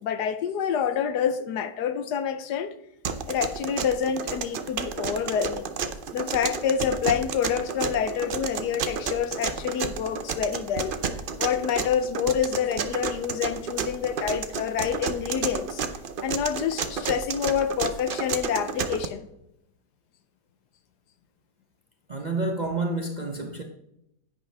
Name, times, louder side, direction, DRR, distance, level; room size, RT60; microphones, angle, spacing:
voice 1, 0.0-2.7 3.3-5.7 6.1-11.0 11.4-15.8 16.2-19.3, left 8 dB, 75° left, 1.2 m, -27 dB
sound 1, 3.0-19.1, right 6 dB, 75° right, 0.4 m, -31 dB
voice 2, 22.1-23.6, right 2 dB, 35° right, 0.7 m, -29 dB
10.5 x 9.3 x 3.3 m
omnidirectional pair, 1.9 m